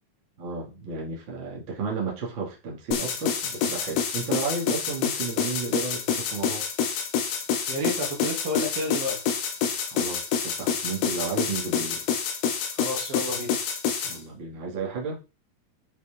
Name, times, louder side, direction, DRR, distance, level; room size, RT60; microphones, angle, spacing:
voice 1, 0.4-6.7 9.8-12.0 14.0-15.2, right 4 dB, 35° right, -3 dB, 2.2 m, -33 dB
sound 1, 2.9-14.2, left 7 dB, 75° left, 3.3 m, -27 dB
voice 2, 7.7-9.2 12.8-13.5, left 1 dB, 60° right, 0 dB, 3.9 m, -30 dB
8.6 x 6.2 x 3.6 m, 0.31 s
omnidirectional pair, 5.0 m